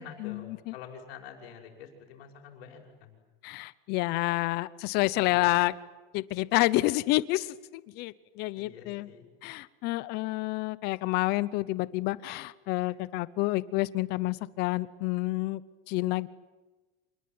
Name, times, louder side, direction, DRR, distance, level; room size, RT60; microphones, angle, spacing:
voice 1, 0.0-3.2 5.3-5.5 8.5-9.2 12.9-13.0, left 7 dB, 90° left, 3 dB, 6.1 m, -47 dB
voice 2, 3.4-5.7 6.1-9.1 9.4-15.6 15.9-16.3, left 19 dB, 35° left, 18 dB, 0.8 m, -29 dB
27.0 x 21.0 x 9.5 m, 1.2 s
supercardioid pair, 170°, 29 cm